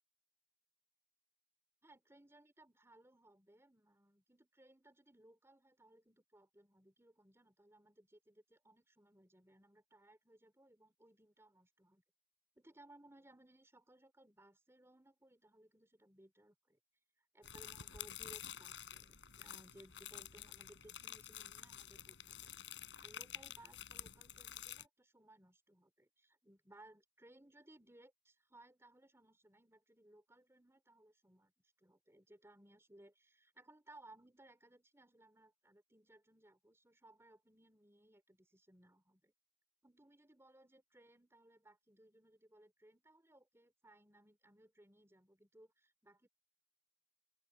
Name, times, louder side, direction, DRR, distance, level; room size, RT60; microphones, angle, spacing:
voice 1, 1.8-12.0 12.6-16.8 17.3-22.5 23.0-31.5 31.8-39.3 39.8-46.3, right 1 dB, 15° right, 3.7 m, -64 dB
sound 1, 17.4-24.8, left 10 dB, 75° left, 6.1 m, -50 dB
open air
head